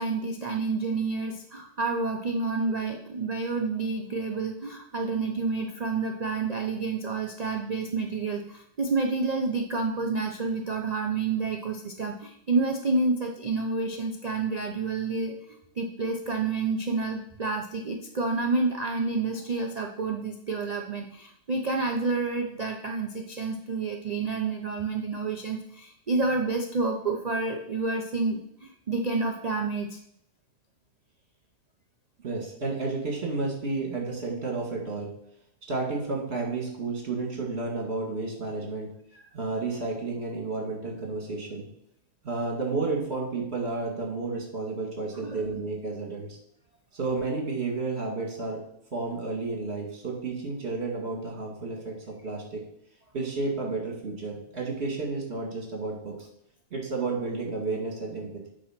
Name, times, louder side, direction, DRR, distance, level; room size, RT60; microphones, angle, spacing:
voice 1, 0.0-30.0 39.1-39.2 45.1-45.5, right 3 dB, 90° right, 3 dB, 0.3 m, -29 dB
voice 2, 32.2-35.1 35.7-38.9 39.3-41.7 42.2-46.4 46.9-48.6 48.9-51.9 52.2-52.6 53.1-56.1 56.7-58.5, right 3 dB, 40° right, -1 dB, 2.3 m, -31 dB
8.4 x 3.9 x 5.8 m, 0.71 s
omnidirectional pair, 1.7 m